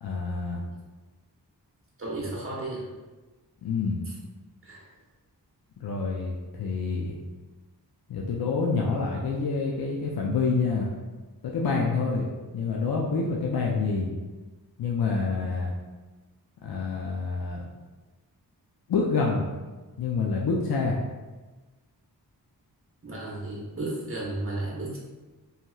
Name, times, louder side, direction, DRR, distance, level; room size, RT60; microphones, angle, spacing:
voice 1, 0.0-0.6 3.6-4.0 5.8-7.2 8.1-10.9 11.4-12.3 12.5-14.1 14.8-15.7 16.6-17.6 18.9-19.5 20.0-21.0, left 4 dB, 60° left, -2 dB, 0.5 m, -27 dB
voice 2, 2.0-2.9 4.6-4.9 23.0-25.0, right 2 dB, 30° right, -5 dB, 1.0 m, -33 dB
2.8 x 2.7 x 2.3 m, 1.2 s
cardioid pair, 50°, 41 cm